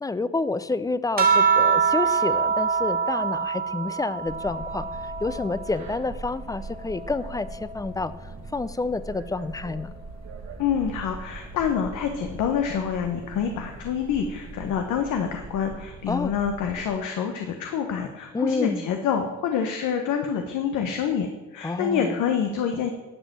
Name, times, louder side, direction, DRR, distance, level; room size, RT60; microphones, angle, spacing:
voice 1, 0.0-8.1 8.5-9.9 16.1-16.3 18.3-18.8 21.6-22.2, left 3 dB, 10° left, 15 dB, 0.5 m, -29 dB
sound 1, 1.2-6.0 6.4-8.2 9.4-9.9, right 6 dB, 30° right, 1.9 m, -25 dB
sound 2, 4.2-16.9, right 3 dB, 60° right, 1.7 m, -41 dB
voice 2, 10.6-22.9, left 7 dB, 85° left, 5 dB, 1.0 m, -27 dB
11.0 x 5.3 x 7.4 m, 1.2 s
cardioid pair, 90°, 30 cm